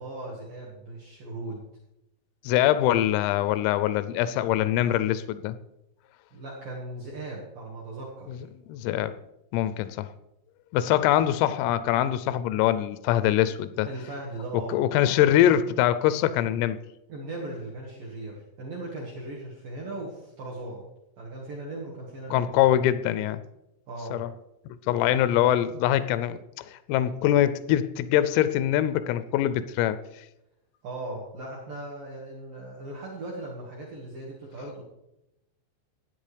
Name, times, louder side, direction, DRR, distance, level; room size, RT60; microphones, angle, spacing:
voice 1, 0.0-1.6 6.3-8.4 13.8-14.8 17.1-20.9 21.2-22.5 23.9-24.2 30.8-34.8, right 2 dB, 70° right, -3 dB, 2.1 m, -38 dB
voice 2, 2.4-5.6 8.7-9.2 9.5-10.1 10.7-13.9 14.7-16.8 22.3-23.4 24.1-24.3 24.9-26.4 26.7-30.0, left 12 dB, 90° left, 14 dB, 3.2 m, -23 dB
16.0 x 9.0 x 3.3 m, 0.89 s
omnidirectional pair, 5.9 m